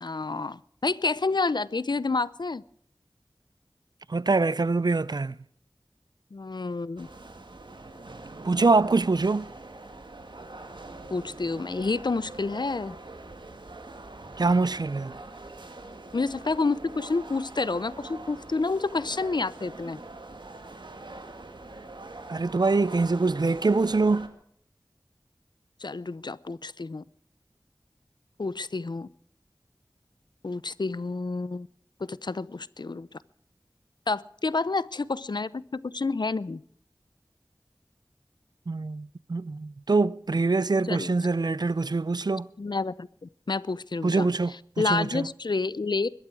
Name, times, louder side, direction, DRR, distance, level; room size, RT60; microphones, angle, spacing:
voice 1, 0.0-2.6 6.3-7.1 11.1-13.0 16.1-20.0 25.8-27.0 28.4-29.1 30.4-31.7 32.0-33.1 34.1-36.6 40.8-41.1 42.6-46.1, left 3 dB, 70° left, 0.6 m, -29 dB
voice 2, 4.1-5.3 8.4-9.5 14.4-15.1 22.3-24.3 38.7-42.5 44.0-44.5 44.9-45.3, right 3 dB, 60° right, 0.5 m, -24 dB
sound 1, 7.0-24.3, right 2 dB, 80° right, 1.9 m, -43 dB
21.5 x 12.5 x 4.7 m
wide cardioid pair, 45°, 8 cm